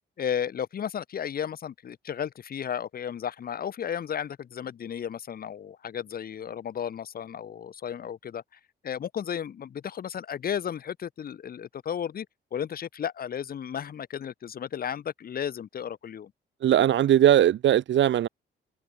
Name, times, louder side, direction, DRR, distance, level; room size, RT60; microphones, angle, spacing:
voice 1, 0.2-12.3 12.5-16.3, left 8 dB, 50° left, 4.8 m, -34 dB
voice 2, 16.6-18.3, right 11 dB, 70° right, 2.6 m, -20 dB
wide cardioid pair, 175°, 20 cm